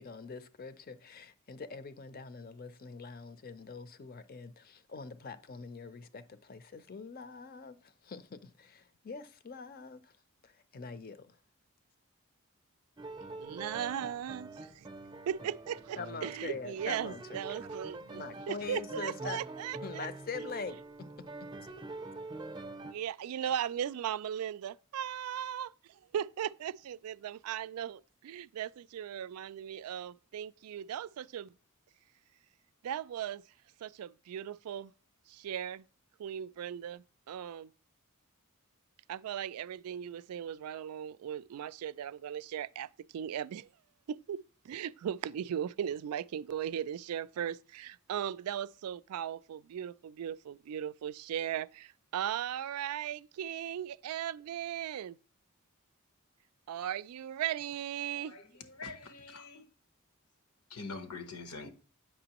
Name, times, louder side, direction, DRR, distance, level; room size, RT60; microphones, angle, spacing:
voice 1, 0.0-10.2 10.4-11.4 16.0-17.6 18.1-19.4 19.8-20.8, left 4 dB, 40° left, 0.5 m, -44 dB
sound 1, 13.0-22.9, right 2 dB, 20° right, 0.6 m, -45 dB
voice 2, 13.4-14.9 15.3-20.1 22.8-31.5 32.8-33.4 33.8-34.9 35.3-35.8 36.2-37.7 39.1-43.7 44.1-55.2 56.7-58.3, right 9 dB, 90° right, 0.3 m, -38 dB
voice 3, 58.8-59.6 60.7-61.7, left 4 dB, 85° left, 1.0 m, -44 dB
8.6 x 6.0 x 2.9 m
head